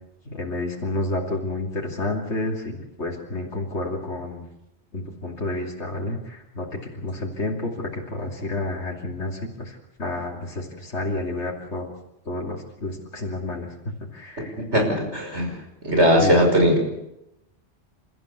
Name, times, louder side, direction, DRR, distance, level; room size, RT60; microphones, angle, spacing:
voice 1, 0.3-4.4 4.9-6.7 6.9-11.9 12.3-13.7 14.1-14.5 16.2-16.3, left 2 dB, 80° left, -1 dB, 3.2 m, -30 dB
voice 2, 14.6-15.5 15.8-16.8, equal, 80° right, 2 dB, 5.9 m, -19 dB
29.5 x 14.0 x 8.2 m, 0.85 s
omnidirectional pair, 1.2 m